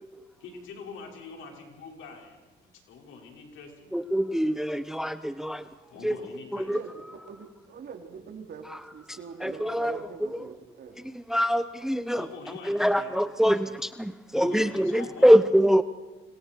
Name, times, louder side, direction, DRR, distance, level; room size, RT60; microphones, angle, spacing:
voice 1, 0.4-4.0 5.9-6.7 12.1-13.1 13.4-13.8 14.4-15.4, left 4 dB, 85° left, 0 dB, 5.6 m, -44 dB
voice 2, 3.9-5.7 6.0-6.2 6.5-6.8 8.7-8.8 9.1-10.6 11.0-12.3 12.6-15.8, equal, ahead, 12 dB, 0.9 m, -24 dB
voice 3, 6.7-7.0 7.3-8.7 8.9-11.0, right 6 dB, 60° right, 3 dB, 3.5 m, -43 dB
29.0 x 26.5 x 4.7 m, 1.2 s
cardioid pair, 90°, 20 cm